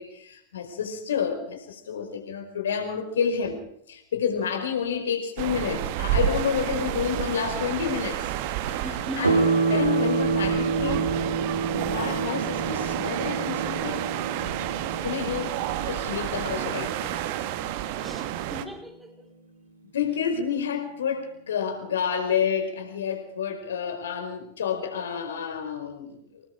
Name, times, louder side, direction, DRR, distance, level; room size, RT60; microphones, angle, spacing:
voice 1, 0.0-3.6 3.9-8.3 8.7-8.8 9.2-9.4 9.7-11.1 11.7-14.0 15.0-17.1 19.9-26.4, left 7 dB, 65° left, 6 dB, 4.7 m, -29 dB
sound 1, 5.4-18.6, right 12 dB, 50° right, 1.7 m, -30 dB
voice 2, 8.8-9.5 17.8-19.3, equal, 5° right, 3 dB, 4.4 m, -38 dB
sound 2, 9.2-18.1, right 4 dB, 80° right, 2.7 m, -28 dB
25.5 x 20.0 x 5.1 m, 0.70 s
figure-of-eight pair, 90°, 0 cm